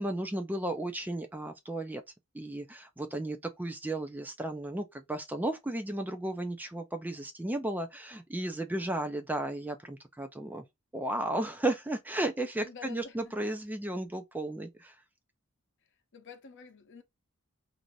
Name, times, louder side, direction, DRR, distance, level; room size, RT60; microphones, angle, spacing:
voice 1, 0.0-2.0 2.3-10.6 10.9-14.9, right 1 dB, 10° right, 0.4 m, -34 dB
voice 2, 12.6-13.3 16.1-17.0, left 5 dB, 60° left, 0.7 m, -49 dB
2.6 x 2.4 x 3.0 m
head